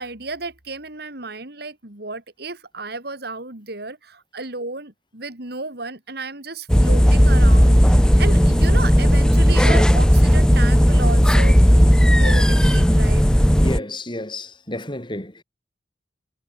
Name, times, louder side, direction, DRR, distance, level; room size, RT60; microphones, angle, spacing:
voice 1, 0.0-13.3, right 3 dB, 60° right, 4.2 m, -33 dB
sound 1, 6.7-13.8, equal, 5° left, 1.0 m, -14 dB
voice 2, 13.5-15.4, left 1 dB, 25° left, 6.3 m, -31 dB
head